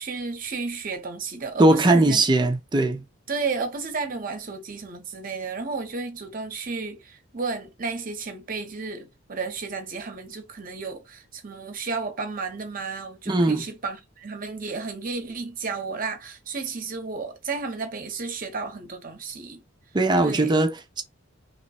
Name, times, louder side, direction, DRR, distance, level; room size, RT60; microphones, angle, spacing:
voice 1, 0.0-2.2 3.3-19.6 20.2-20.6, right 4 dB, 45° right, 0.8 m, -33 dB
voice 2, 1.6-3.1 13.3-13.6 19.9-21.0, right 2 dB, 20° right, 0.5 m, -20 dB
3.0 x 2.2 x 4.1 m
head